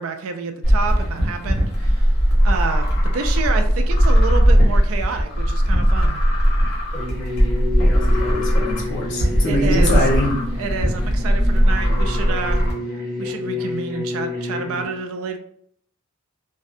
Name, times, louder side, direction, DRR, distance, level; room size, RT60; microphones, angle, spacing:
voice 1, 0.0-2.1 2.4-6.2 9.4-10.0 10.6-12.6 13.2-15.4, right 4 dB, 65° right, 7 dB, 0.3 m, -28 dB
sound 1, 0.6-12.7, equal, 75° left, 1.0 m, -18 dB
sound 2, 6.9-14.8, left 2 dB, 10° left, 1.0 m, -30 dB
voice 2, 7.6-10.3, left 1 dB, 55° left, -2 dB, 0.7 m, -24 dB
2.6 x 2.1 x 2.5 m, 0.64 s
head